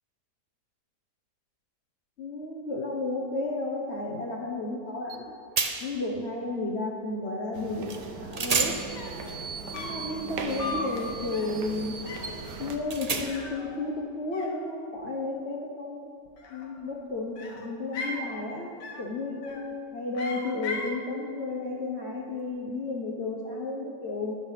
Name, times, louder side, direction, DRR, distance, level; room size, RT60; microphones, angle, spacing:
voice 1, 2.2-5.3 5.8-8.8 9.7-12.0 12.6-16.1 16.5-24.4, left 2 dB, 45° left, -2 dB, 1.2 m, -33 dB
sound 1, 5.1-5.2 5.6-6.1 7.9-8.0 8.3-13.6, right 4 dB, 45° right, 0.4 m, -33 dB
sound 2, 7.5-12.8, right 3 dB, 75° right, 1.7 m, -39 dB
sound 3, 9.0-9.3 9.7-10.1 10.6-11.0 11.3-11.6 12.1-12.4 13.2-14.1 14.3-15.0 16.3-16.9 17.3-18.3 18.8-19.1 19.4-19.8 20.1-21.0, left 2 dB, 80° left, 1.9 m, -38 dB
12.0 x 11.0 x 5.7 m, 2.6 s
omnidirectional pair, 1.8 m